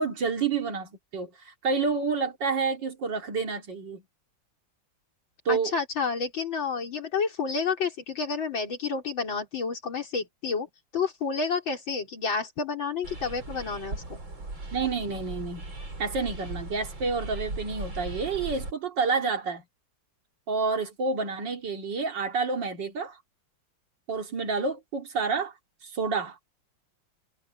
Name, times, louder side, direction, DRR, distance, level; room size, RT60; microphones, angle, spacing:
voice 1, 0.0-4.0 5.5-5.7 14.7-15.7 16.0-19.6 20.5-23.2 24.1-25.5 25.8-26.4, right 4 dB, 65° right, 2.9 m, -29 dB
voice 2, 5.5-14.2, left 5 dB, 85° left, 4.7 m, -30 dB
sound 1, 13.0-18.7, right 2 dB, 85° right, 6.9 m, -38 dB
omnidirectional pair, 2.1 m